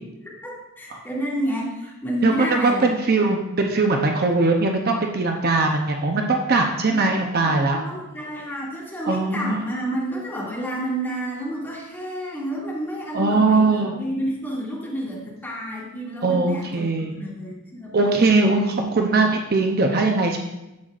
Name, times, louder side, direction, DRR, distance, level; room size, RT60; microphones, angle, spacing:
voice 1, 0.8-2.9 6.9-7.2 7.4-18.3, equal, 10° left, -6 dB, 2.3 m, -30 dB
voice 2, 2.2-7.8 9.1-9.6 13.1-14.0 16.2-17.1 17.9-20.4, right 3 dB, 45° right, 2 dB, 0.7 m, -20 dB
10.5 x 7.6 x 2.5 m, 0.94 s
head